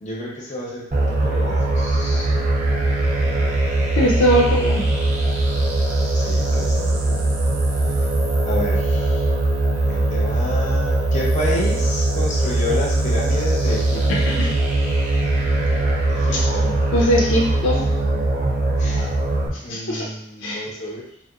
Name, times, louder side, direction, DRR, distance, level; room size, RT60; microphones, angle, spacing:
voice 1, 0.0-2.3 6.1-7.4 8.4-9.2 9.9-14.1 16.1-16.8 18.8-19.1 19.6-21.0, left 1 dB, 40° left, -3 dB, 0.6 m, -30 dB
sound 1, 0.9-19.5, right 2 dB, 40° right, 0.4 m, -20 dB
voice 2, 4.0-4.8 14.4-14.5 16.9-17.8 19.7-20.0 20.4-20.6, equal, 90° left, -3 dB, 0.5 m, -19 dB
2.8 x 2.1 x 2.3 m, 0.72 s
head